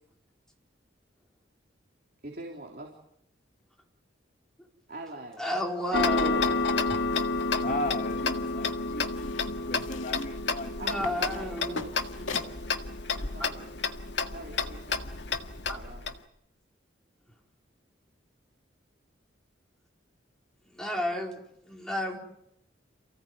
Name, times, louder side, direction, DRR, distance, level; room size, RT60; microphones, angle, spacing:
voice 1, 2.2-2.9 4.9-5.4 5.9-6.9 10.8-12.0 13.3-13.7 14.3-15.1 15.7-16.1, right 2 dB, 50° right, 0 dB, 3.6 m, -43 dB
voice 2, 5.4-6.4 6.9-7.0 10.8-11.8 12.2-12.4 13.1-13.5 15.7-15.8 20.7-22.2, left 1 dB, 5° left, 0 dB, 4.2 m, -32 dB
Tick-tock, 5.9-16.1, left 3 dB, 65° left, 1.8 m, -30 dB
sound 1, 7.0-12.6, left 3 dB, 90° left, 2.0 m, -43 dB
voice 3, 7.6-10.8, left 1 dB, 40° left, 6 dB, 2.1 m, -36 dB
28.5 x 16.5 x 9.3 m, 0.78 s
head